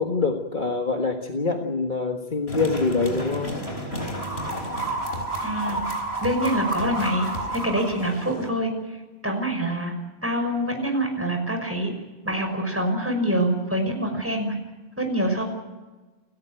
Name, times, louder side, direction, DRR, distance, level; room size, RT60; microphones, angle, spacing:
voice 1, 0.0-3.6, left 4 dB, 50° left, 3 dB, 1.8 m, -25 dB
sound 1, 2.5-8.5, right 1 dB, 80° left, 4.6 m, -30 dB
voice 2, 5.4-5.8 6.2-7.3 7.6-8.7 9.2-9.9 10.2-11.9 12.2-14.5 15.0-15.4, right 1 dB, 15° right, 3 dB, 5.9 m, -25 dB
29.5 x 14.5 x 9.0 m, 1.2 s
omnidirectional pair, 1.1 m